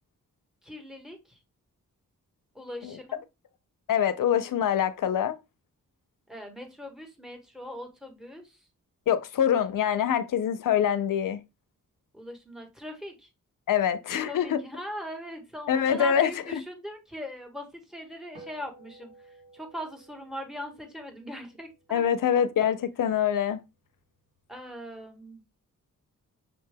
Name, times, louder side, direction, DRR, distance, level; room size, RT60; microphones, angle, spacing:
voice 1, 0.6-1.4 2.5-3.2 6.3-8.6 12.1-13.3 14.3-19.1 19.5-22.0 24.5-25.4, equal, ahead, 0.9 m, -40 dB
voice 2, 3.9-5.4 9.1-11.4 13.7-14.6 15.7-16.6 21.9-23.6, left 9 dB, 75° left, 0.5 m, -25 dB
sound 1, 18.3-23.0, right 2 dB, 80° right, 1.6 m, -54 dB
6.2 x 2.2 x 3.3 m
wide cardioid pair, 160°, 33 cm